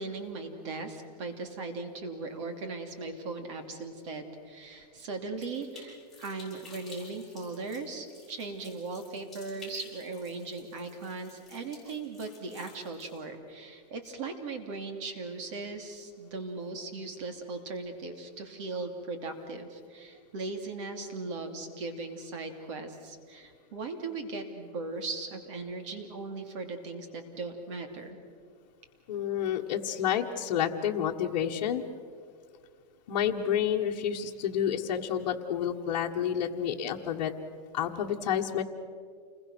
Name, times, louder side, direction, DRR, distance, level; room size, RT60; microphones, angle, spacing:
voice 1, 0.0-28.2, right 3 dB, 45° right, 5 dB, 2.8 m, -38 dB
sound 1, 5.4-13.2, left 3 dB, ahead, 7.7 m, -53 dB
voice 2, 29.1-31.8 33.1-37.3 37.7-38.6, left 9 dB, 55° left, -1 dB, 1.6 m, -29 dB
29.0 x 22.0 x 6.2 m, 2.1 s
supercardioid pair, 170°, 21 cm